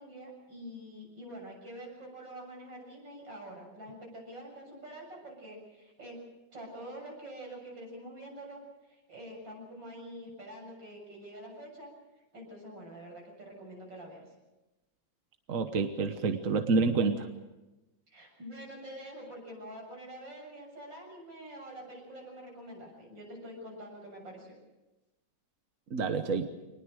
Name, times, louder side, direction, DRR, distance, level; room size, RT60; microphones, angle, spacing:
voice 1, 0.0-6.2 6.5-8.6 8.9-11.9 12.2-14.3 18.1-24.5, right 1 dB, 85° right, 0 dB, 7.9 m, -46 dB
voice 2, 15.5-17.3 25.9-26.5, right 4 dB, 50° right, 7 dB, 1.5 m, -28 dB
25.0 x 20.5 x 6.4 m, 1.0 s
omnidirectional pair, 2.0 m